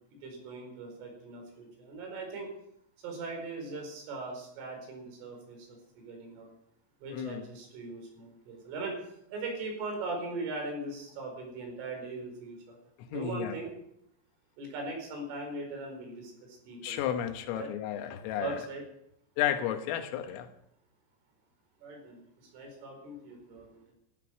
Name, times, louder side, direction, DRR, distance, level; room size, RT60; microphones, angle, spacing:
voice 1, 0.2-2.5 3.0-6.5 7.0-9.0 9.3-12.8 13.1-13.7 14.6-17.1 17.5-17.7 18.4-18.8 21.8-23.9, right 3 dB, 70° right, 7.2 m, -40 dB
voice 2, 7.1-7.5 13.0-13.6 16.8-18.6 19.4-20.5, left 10 dB, 80° left, 3.7 m, -33 dB
17.5 x 13.0 x 5.9 m
omnidirectional pair, 6.0 m